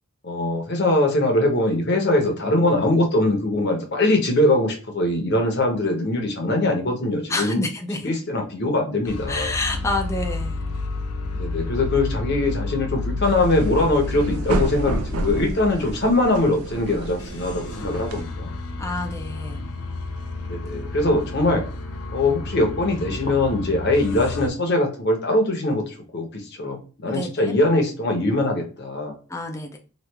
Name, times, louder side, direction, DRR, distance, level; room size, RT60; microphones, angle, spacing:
voice 1, 0.2-7.6 8.0-9.5 11.3-18.5 20.5-21.6 22.1-29.1, left 2 dB, 50° left, 3 dB, 0.8 m, -22 dB
voice 2, 7.3-8.1 9.3-10.6 18.8-19.7 27.0-27.5 29.3-29.8, left 2 dB, 15° left, 3 dB, 0.4 m, -28 dB
sound 1, 9.0-16.8 17.2-24.5, left 3 dB, 80° left, 0.5 m, -31 dB
sound 2, 13.2-18.2, right 2 dB, 75° right, 0.5 m, -30 dB
3.1 x 2.4 x 3.3 m, 0.37 s
head